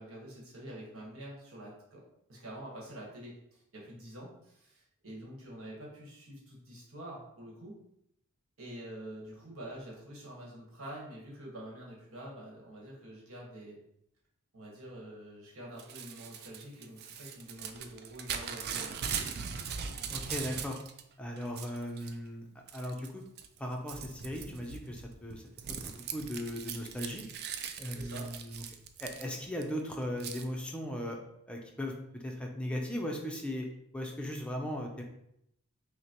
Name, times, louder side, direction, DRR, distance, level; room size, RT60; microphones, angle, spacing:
voice 1, 0.0-2.0 2.3-7.7 8.6-13.8 14.5-19.1 27.9-28.4, right 1 dB, 70° right, -4 dB, 1.3 m, -47 dB
Crumpling crinkling / Tearing, 15.8-21.0 21.4-22.1 22.7-23.1 23.4-29.6 30.2-30.5, right 7 dB, 50° right, 0.3 m, -40 dB
voice 2, 20.1-20.8 21.2-23.2 23.6-25.4 25.8-27.5 27.8-28.6 29.0-31.2 31.5-33.7 33.9-35.0, equal, 5° left, 0 dB, 0.5 m, -38 dB
5.7 x 2.2 x 2.9 m, 0.77 s
head